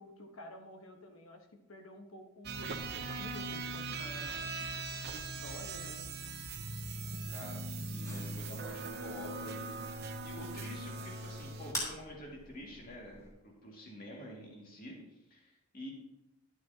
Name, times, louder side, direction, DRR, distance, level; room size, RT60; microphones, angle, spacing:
voice 1, 0.0-4.5 5.0-6.1, left 1 dB, 70° left, 5 dB, 1.2 m, -50 dB
sound 1, 2.4-11.7, right 3 dB, 45° right, 0.7 m, -40 dB
voice 2, 7.3-9.7 10.2-15.9, equal, 40° left, -2 dB, 2.2 m, -48 dB
sound 2, 8.0-13.3, equal, 15° left, 3.1 m, -46 dB
11.0 x 9.3 x 2.8 m, 0.88 s
head